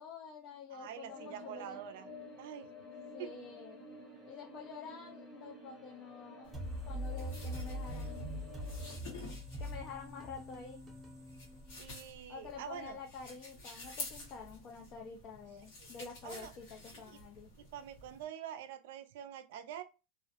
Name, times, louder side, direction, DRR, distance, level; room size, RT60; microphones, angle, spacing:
voice 1, 0.0-1.8 3.1-3.8 4.3-6.5 6.8-8.4 9.6-10.8 12.3-17.5, left 5 dB, 45° left, 0.4 m, -48 dB
voice 2, 0.7-2.1 2.4-2.7 3.2-3.3 11.8-13.0 16.2-16.5 17.0-17.2 17.6-19.8, right 10 dB, 75° right, 0.3 m, -46 dB
sound 1, 1.1-9.0, left 2 dB, 20° left, 0.8 m, -51 dB
sound 2, 6.4-18.2, left 2 dB, 70° left, 1.1 m, -51 dB
sound 3, 6.5-12.2, equal, 10° right, 0.7 m, -43 dB
2.4 x 2.0 x 2.8 m
supercardioid pair, 140°, 0 cm